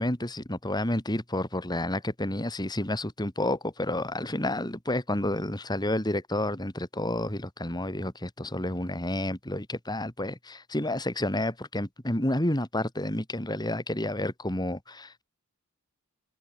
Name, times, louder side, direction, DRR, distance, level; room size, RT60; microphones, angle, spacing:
voice 1, 0.0-15.2, left 1 dB, 20° left, 2.9 m, -30 dB
head